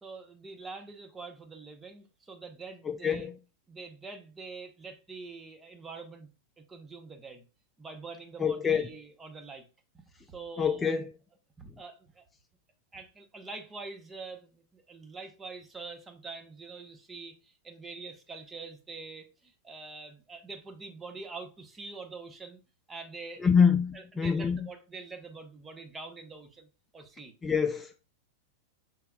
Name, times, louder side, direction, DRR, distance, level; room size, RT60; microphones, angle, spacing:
voice 1, 0.0-3.3 3.7-6.3 6.6-7.4 7.8-9.7 9.9-10.8 11.8-12.2 12.9-22.6 22.9-23.5 23.9-26.7 26.9-27.3, right 4 dB, 15° right, 0.8 m, -45 dB
voice 2, 2.8-3.4 8.4-8.9 10.6-11.1 23.4-24.7 27.4-28.1, left 6 dB, 20° left, 0.4 m, -26 dB
5.7 x 3.3 x 2.3 m
hypercardioid pair, 105°, 0 cm